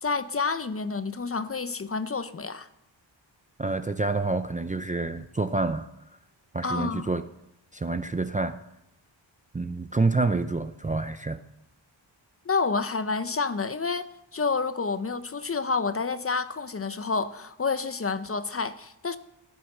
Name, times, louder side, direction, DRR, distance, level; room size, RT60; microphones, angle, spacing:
voice 1, 0.0-2.7 6.6-7.1 12.5-14.1 14.3-19.2, left 4 dB, 30° left, 0.6 m, -29 dB
voice 2, 3.6-5.9 6.5-7.2 7.7-8.6 9.5-11.4, right 3 dB, 20° right, 0.4 m, -27 dB
13.5 x 9.9 x 6.5 m
wide cardioid pair, 120°, 45 cm